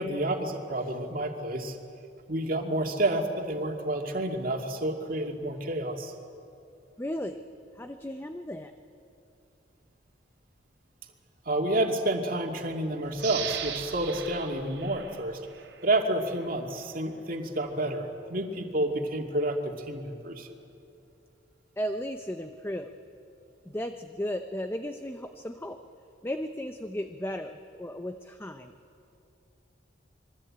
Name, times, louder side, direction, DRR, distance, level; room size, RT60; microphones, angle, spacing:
voice 1, 0.0-1.8 2.3-6.1 11.5-15.4 15.8-20.5, right 1 dB, 50° right, 2 dB, 2.5 m, -29 dB
voice 2, 7.0-7.4 7.8-8.7 21.8-22.9 23.7-25.8 26.2-28.7, equal, 15° left, 7 dB, 0.7 m, -35 dB
sound 1, 13.2-15.9 16.3-16.4, right 8 dB, 85° right, 3.2 m, -38 dB
26.0 x 22.5 x 8.8 m, 2.7 s
head